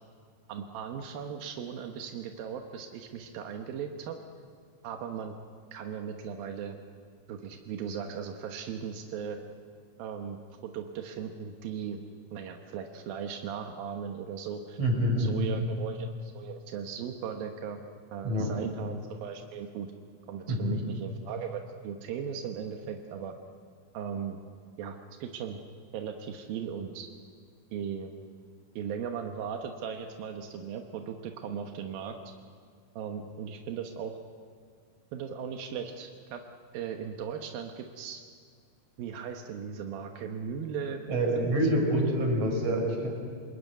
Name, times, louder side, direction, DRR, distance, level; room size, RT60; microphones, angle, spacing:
voice 1, 0.5-4.2 4.8-5.4 5.7-6.8 7.3-9.4 10.0-12.0 12.3-14.8 15.2-17.8 18.1-19.9 20.3-23.3 23.9-24.4 24.8-25.6 25.9-27.1 27.7-28.1 28.8-32.2 33.0-34.1 35.1-36.4 36.7-38.2 39.0-41.0 41.3-42.0, right 7 dB, 90° right, 4 dB, 3.0 m, -37 dB
voice 2, 14.8-15.5 18.2-18.5 20.5-20.8 41.1-43.1, equal, 45° right, 1 dB, 6.1 m, -26 dB
27.0 x 21.0 x 9.3 m, 2.1 s
omnidirectional pair, 4.1 m